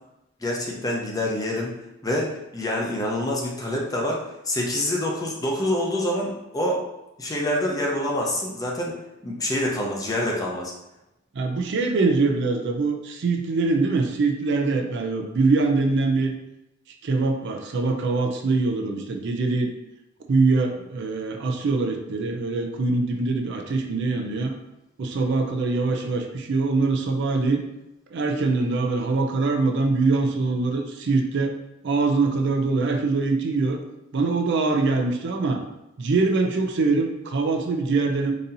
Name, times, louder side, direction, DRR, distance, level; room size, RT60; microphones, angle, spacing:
voice 1, 0.4-1.7 2.0-6.8 7.2-8.9 9.2-10.7, left 1 dB, 20° left, -2 dB, 0.6 m, -26 dB
voice 2, 11.3-16.3 17.0-19.7 20.3-24.5 25.0-27.6 28.1-31.5 31.8-33.8 34.1-35.6 36.0-38.3, right 3 dB, 60° right, 4 dB, 0.4 m, -23 dB
3.9 x 2.7 x 2.6 m, 0.90 s
head